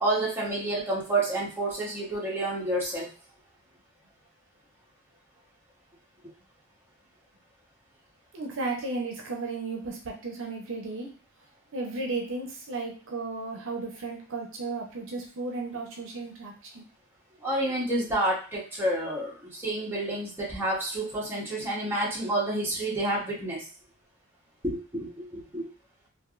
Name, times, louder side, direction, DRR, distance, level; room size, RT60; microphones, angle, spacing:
voice 1, 0.0-3.1 17.4-23.6 24.6-25.7, right 1 dB, 10° right, -5 dB, 1.0 m, -29 dB
voice 2, 8.3-11.1 11.7-16.8, right 3 dB, 60° right, 1 dB, 0.6 m, -34 dB
3.3 x 2.5 x 2.4 m, 0.36 s
head